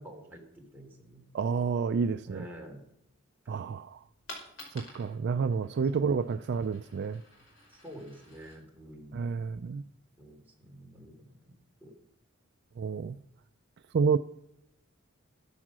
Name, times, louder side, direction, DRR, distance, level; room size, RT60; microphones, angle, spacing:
voice 1, 0.0-1.3 2.2-2.8 7.7-9.3 10.2-11.5 11.8-11.9, equal, 10° right, -1 dB, 3.3 m, -48 dB
voice 2, 1.3-2.5 3.5-4.0 4.7-7.2 9.1-9.8 12.8-13.2 13.9-14.2, right 5 dB, 55° right, 12 dB, 0.4 m, -29 dB
Coin (dropping), 4.0-9.9, left 2 dB, 70° left, 5.3 m, -52 dB
13.5 x 10.0 x 6.2 m, 0.82 s
head